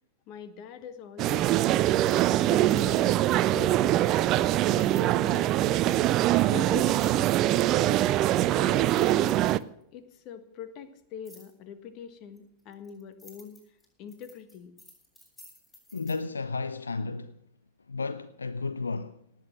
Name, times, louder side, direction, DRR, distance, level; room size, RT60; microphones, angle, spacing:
voice 1, 0.3-1.9 2.4-4.2 4.5-6.1 6.5-7.3 7.8-8.1 8.5-14.7, left 7 dB, 40° left, 1.6 m, -43 dB
sound 1, 1.2-9.6, right 14 dB, 35° right, 0.5 m, -23 dB
sound 2, 2.0-3.3 4.8-5.1 6.9-7.4 8.3-8.4 8.7-9.8 11.2-11.5 12.4-16.2, left 1 dB, 15° left, 7.5 m, -54 dB
voice 2, 15.9-17.4 17.9-19.2, left 4 dB, 75° left, 0.5 m, -33 dB
18.0 x 8.5 x 7.7 m
figure-of-eight pair, 90°, 0 cm